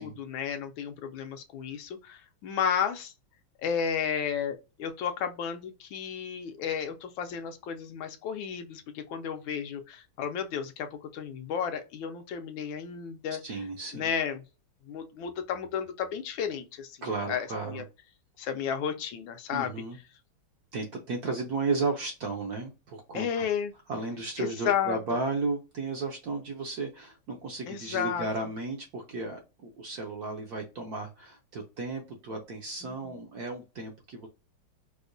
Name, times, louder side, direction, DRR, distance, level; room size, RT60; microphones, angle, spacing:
voice 1, 0.2-3.1 3.6-13.4 13.9-14.4 14.9-17.0 17.3-17.8 18.4-19.7 23.1-23.7 24.4-25.0 27.7-28.3 32.8-33.0, left 7 dB, 75° left, 1.3 m, -32 dB
voice 2, 13.4-14.1 17.0-17.8 19.5-20.0 20.7-23.4 23.9-34.3, right 3 dB, 65° right, 0.9 m, -34 dB
4.7 x 2.1 x 2.5 m
omnidirectional pair, 2.2 m